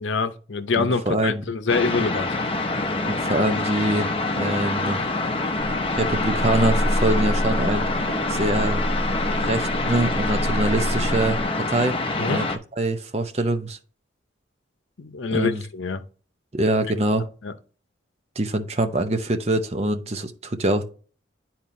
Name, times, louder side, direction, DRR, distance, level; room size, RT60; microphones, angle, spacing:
voice 1, 0.0-2.4 12.2-12.4 15.0-16.1 17.4-17.5, left 4 dB, 80° left, 0.7 m, -25 dB
voice 2, 0.8-1.4 3.1-4.1 4.4-5.0 6.0-7.9 8.3-8.8 9.4-12.0 12.3-12.5 12.8-13.8 15.3-15.6 16.5-17.3 18.4-20.9, right 1 dB, 35° right, 0.7 m, -24 dB
sound 1, 1.7-12.6, left 2 dB, 30° left, 0.7 m, -26 dB
sound 2, 5.6-11.4, equal, 65° right, 1.7 m, -27 dB
10.5 x 4.4 x 2.6 m
head